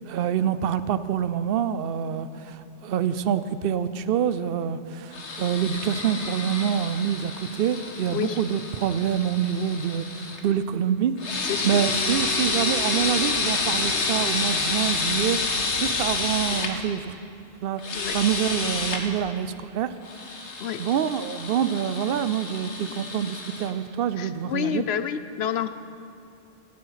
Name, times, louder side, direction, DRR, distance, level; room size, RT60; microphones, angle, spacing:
voice 1, 0.1-15.5 15.8-17.1 17.6-17.8 18.1-20.0 20.8-24.8, right 8 dB, 60° right, 13 dB, 0.8 m, -26 dB
sound 1, 5.1-10.4 11.2-16.7 17.8-19.0 20.0-23.7, left 3 dB, 85° left, 1.6 m, -29 dB
voice 2, 11.5-11.9 17.9-18.2 20.6-20.8 24.2-25.7, left 8 dB, 70° left, 12 dB, 0.8 m, -29 dB
18.5 x 11.5 x 5.7 m, 2.6 s
omnidirectional pair, 1.2 m